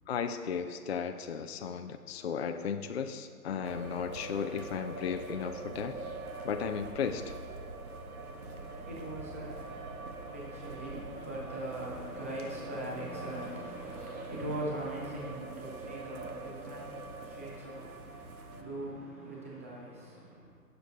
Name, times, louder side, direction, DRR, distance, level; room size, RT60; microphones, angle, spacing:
voice 1, 0.1-5.9 6.4-7.3, left 7 dB, 45° left, 7 dB, 0.4 m, -35 dB
sound 1, 3.6-18.6, right 3 dB, 70° right, 1.0 m, -43 dB
voice 2, 8.2-20.5, right 1 dB, 10° right, -3 dB, 0.4 m, -41 dB
17.5 x 6.9 x 2.6 m, 2.1 s
figure-of-eight pair, 135°, 46 cm